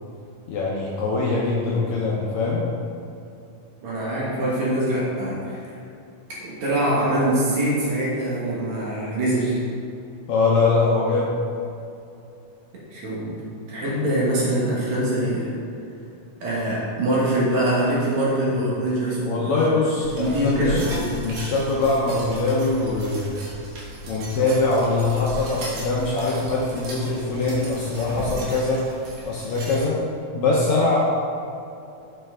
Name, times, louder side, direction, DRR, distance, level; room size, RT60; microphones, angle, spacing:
voice 1, 0.5-2.6 10.3-11.3 19.2-20.8 21.2-23.3 24.1-28.9 29.3-30.0 30.3-31.0, left 3 dB, 75° left, -5 dB, 1.8 m, -22 dB
voice 2, 3.8-5.6 6.4-9.6 12.9-13.4 13.7-15.6 16.4-19.6 20.2-21.1, right 1 dB, 60° right, -6 dB, 2.5 m, -23 dB
sound 1, 20.0-29.8, equal, 80° right, 2.9 m, -36 dB
7.2 x 5.6 x 3.7 m, 2.6 s
omnidirectional pair, 3.9 m